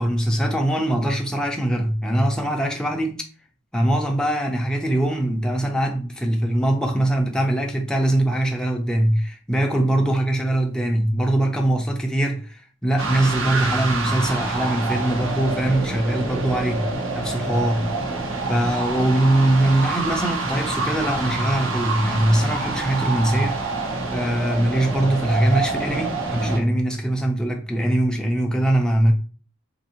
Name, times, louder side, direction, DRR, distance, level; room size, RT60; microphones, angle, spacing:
voice 1, 0.0-3.2 3.7-16.9 17.1-17.9 18.5-23.6 24.1-29.1, right 1 dB, 5° left, 0.5 m, -22 dB
sound 1, 13.0-26.6, right 3 dB, 75° right, 0.7 m, -27 dB
3.8 x 2.7 x 2.8 m
head